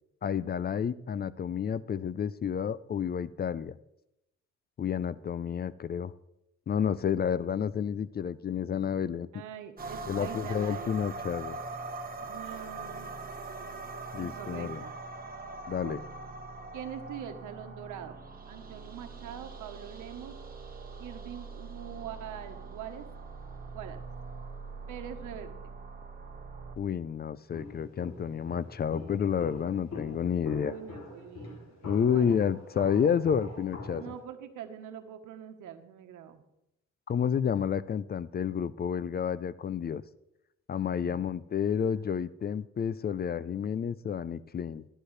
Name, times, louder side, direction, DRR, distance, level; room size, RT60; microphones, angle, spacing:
voice 1, 0.2-3.8 4.8-6.1 6.7-9.3 10.1-11.6 14.1-14.8 15.7-16.0 26.8-30.7 31.9-34.1 37.1-40.0 40.7-44.9, left 7 dB, 35° left, 17 dB, 0.4 m, -30 dB
voice 2, 9.3-10.9 12.2-13.1 14.2-15.0 15.8-16.0 16.7-18.2 18.5-20.3 21.0-23.1 23.7-24.0 24.9-25.5 30.5-32.4 34.0-36.4 41.0-41.2, right 9 dB, 85° right, 8 dB, 1.1 m, -43 dB
sound 1, 9.8-26.8, right 3 dB, 30° right, 1.2 m, -42 dB
Walk footsteps, 27.5-34.2, left 3 dB, 60° left, 2.8 m, -44 dB
14.0 x 10.0 x 3.2 m, 0.85 s
cardioid pair, 90°, 30 cm